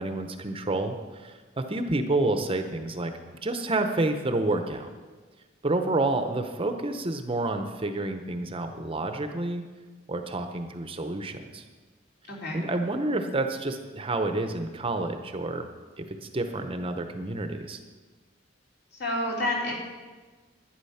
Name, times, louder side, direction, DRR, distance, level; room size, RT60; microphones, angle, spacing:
voice 1, 0.0-3.1 3.4-4.9 5.6-9.6 10.1-11.7 12.5-15.7 16.0-17.8, right 2 dB, 30° right, 7 dB, 0.8 m, -29 dB
voice 2, 12.3-12.6 18.9-19.7, left 1 dB, 55° left, -2 dB, 3.2 m, -29 dB
11.5 x 10.0 x 5.7 m, 1.3 s
head